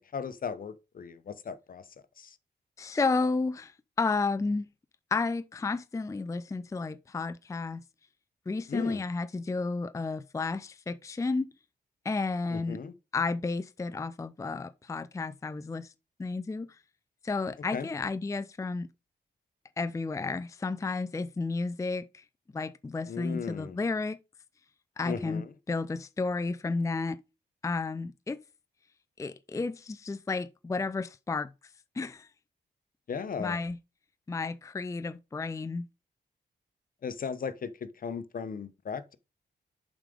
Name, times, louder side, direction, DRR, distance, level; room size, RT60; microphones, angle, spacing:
voice 1, 0.0-1.9 2.2-2.3 8.7-9.0 12.5-12.9 17.7-17.9 23.1-23.8 25.0-25.5 33.1-33.6 37.0-39.2, left 6 dB, 55° left, 0.9 m, -37 dB
voice 2, 2.8-4.7 5.1-7.8 8.5-11.5 12.0-12.8 13.1-15.9 16.2-16.7 17.2-18.9 19.8-22.2 22.5-24.2 25.0-27.2 27.6-28.4 29.2-31.5 32.0-32.3 33.4-33.8 34.3-35.8, left 3 dB, 20° left, 0.4 m, -32 dB
7.4 x 4.9 x 5.0 m
cardioid pair, 75°, 17 cm